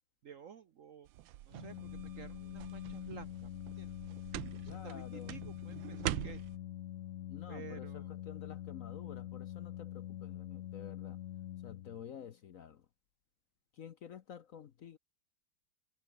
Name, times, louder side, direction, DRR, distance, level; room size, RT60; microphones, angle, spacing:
voice 1, 0.2-1.1 1.4-3.9 4.5-6.4 7.5-8.2, right 8 dB, 55° right, 0.9 m, -52 dB
sound 1, 1.1-6.6, right 14 dB, 80° right, 1.5 m, -44 dB
Organ, 1.5-12.3, left 12 dB, 90° left, 0.6 m, -45 dB
voice 2, 4.7-5.3 7.3-11.2 11.6-12.9 13.7-15.0, left 8 dB, 55° left, 1.0 m, -50 dB
omnidirectional pair, 2.1 m